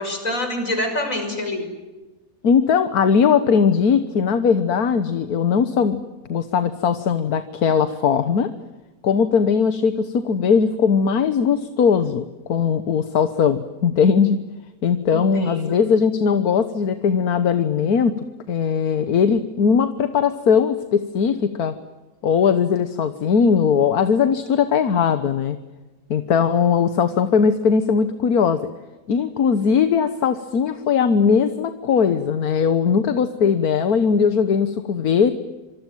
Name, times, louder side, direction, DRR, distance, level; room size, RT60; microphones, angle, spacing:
voice 1, 0.0-1.7 15.1-15.8, left 1 dB, 60° left, 5 dB, 6.7 m, -26 dB
voice 2, 2.4-6.0 6.3-8.5 9.0-14.4 14.8-18.1 18.5-21.8 22.2-25.6 26.1-28.7 29.1-35.3, left 6 dB, 80° left, 10 dB, 1.7 m, -19 dB
26.5 x 24.0 x 9.2 m, 1.1 s
omnidirectional pair, 1.6 m